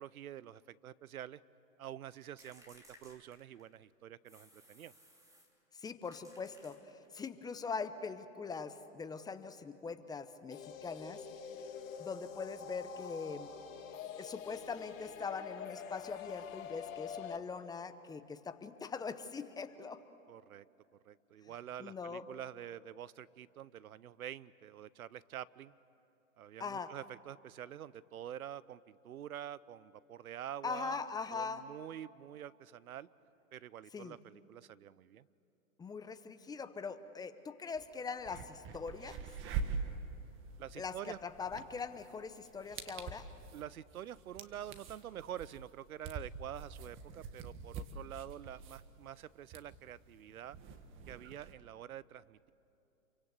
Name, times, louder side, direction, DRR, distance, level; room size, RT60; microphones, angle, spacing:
voice 1, 0.0-1.4 1.8-4.9 20.3-20.7 21.0-25.7 26.4-33.1 33.5-35.3 40.6-41.2 43.5-50.6 51.1-52.5, right 11 dB, 80° right, 19 dB, 0.8 m, -47 dB
sound 1, 2.4-3.8 4.3-5.6 6.1-7.2, equal, 10° right, 2.9 m, -61 dB
voice 2, 5.7-6.8 7.1-11.2 12.0-13.5 14.2-20.0 21.8-22.2 26.6-26.9 30.6-31.6 33.9-34.2 35.8-39.2 40.8-43.3, left 5 dB, 10° left, 10 dB, 0.8 m, -42 dB
sound 2, 10.5-17.4, left 7 dB, 70° left, 1.9 m, -46 dB
sound 3, 37.7-37.8 38.2-51.5, right 5 dB, 30° right, 1.7 m, -45 dB
28.0 x 24.0 x 8.2 m, 2.8 s
hypercardioid pair, 125°, 42 cm